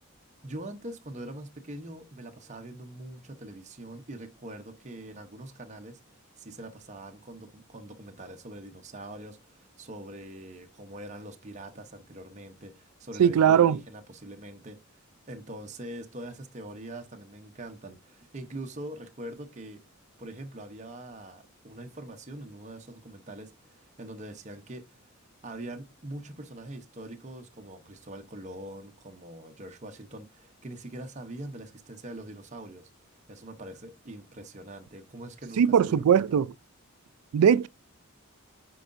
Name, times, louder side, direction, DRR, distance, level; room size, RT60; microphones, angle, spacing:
voice 1, 0.4-6.0 6.4-14.8 15.3-19.8 20.2-24.8 25.4-32.9 33.3-36.2, right 1 dB, 35° right, 0.7 m, -43 dB
voice 2, 13.2-13.8 35.6-36.5 37.3-37.7, right 8 dB, 90° right, 0.3 m, -20 dB
9.1 x 4.7 x 2.5 m
head